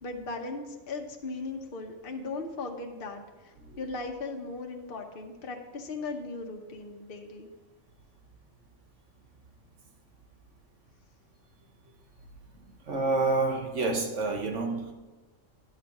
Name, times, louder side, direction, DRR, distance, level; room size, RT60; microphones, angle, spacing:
voice 1, 0.0-7.5, left 3 dB, 45° left, 2 dB, 1.0 m, -38 dB
voice 2, 12.9-14.9, right 3 dB, 65° right, 2 dB, 1.5 m, -28 dB
10.0 x 6.3 x 4.8 m, 1.2 s
omnidirectional pair, 1.4 m